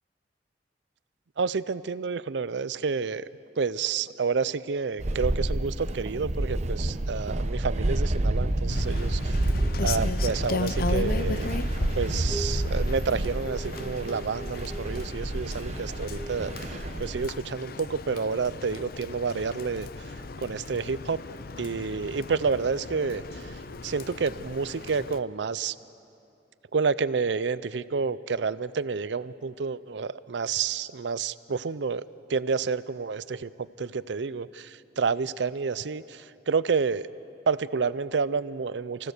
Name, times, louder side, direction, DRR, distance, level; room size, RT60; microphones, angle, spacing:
voice 1, 1.4-3.3 3.6-9.4 9.8-11.5 12.0-20.1 20.4-21.2 21.6-25.7 26.7-32.0 32.3-37.1 37.5-39.1, right 5 dB, 75° right, 17 dB, 0.5 m, -29 dB
sound 1, 5.0-17.3, right 1 dB, 40° right, 0.8 m, -29 dB
sound 2, 6.6-7.1 8.4-8.7 9.6-10.2 11.0-11.5 12.3-12.8 13.4-15.1 16.2-16.6 18.0-18.2, right 2 dB, 30° left, 3.9 m, -43 dB
Rain, 8.7-25.2, left 3 dB, 55° left, 0.6 m, -37 dB
29.0 x 16.5 x 6.7 m, 2.7 s
head